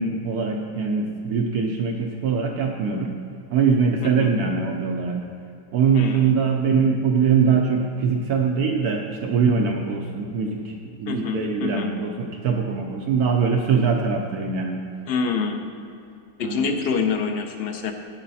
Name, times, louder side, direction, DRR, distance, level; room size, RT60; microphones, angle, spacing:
voice 1, 0.0-3.1 3.5-5.2 5.7-10.7 11.0-14.8 16.4-16.8, right 5 dB, 70° right, 2 dB, 1.2 m, -22 dB
voice 2, 5.9-6.3 11.1-11.9 15.1-15.6 16.4-17.9, left 5 dB, 45° left, 4 dB, 0.8 m, -26 dB
10.0 x 9.4 x 4.2 m, 2.5 s
omnidirectional pair, 1.8 m